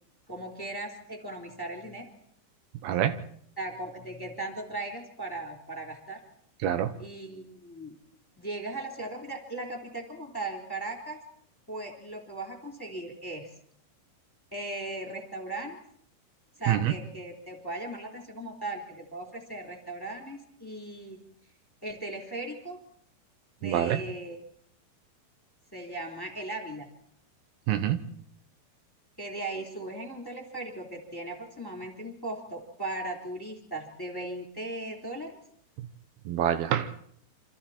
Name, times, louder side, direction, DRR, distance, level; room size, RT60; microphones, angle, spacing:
voice 1, 0.3-2.1 3.6-6.2 7.0-8.0 8.4-11.2 11.7-13.5 14.5-15.8 16.6-21.2 21.8-22.8 23.6-24.4 25.7-26.9 29.2-35.4, right 2 dB, 5° left, 1 dB, 3.3 m, -38 dB
voice 2, 2.8-3.1 6.6-6.9 16.7-16.9 23.6-24.0 27.7-28.0 36.3-36.9, right 11 dB, 80° right, 10 dB, 2.9 m, -26 dB
28.5 x 26.5 x 4.4 m, 0.64 s
omnidirectional pair, 4.4 m